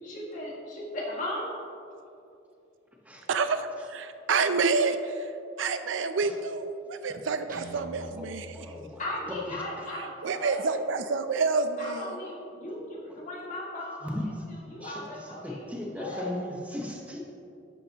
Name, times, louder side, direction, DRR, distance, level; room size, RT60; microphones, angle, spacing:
voice 1, 0.0-1.5 9.0-10.7 11.8-15.7 16.0-16.3, left 1 dB, 40° left, -4 dB, 2.0 m, -37 dB
voice 2, 3.3-5.3 5.6-8.7 10.2-12.2, right 4 dB, 85° right, 9 dB, 0.5 m, -28 dB
Guitar, 7.5-9.5, right 2 dB, 45° right, 0.9 m, -46 dB
voice 3, 8.5-9.0 14.0-14.3 14.8-17.2, left 1 dB, 10° right, -1 dB, 1.1 m, -37 dB
11.5 x 8.7 x 2.9 m, 2.6 s
head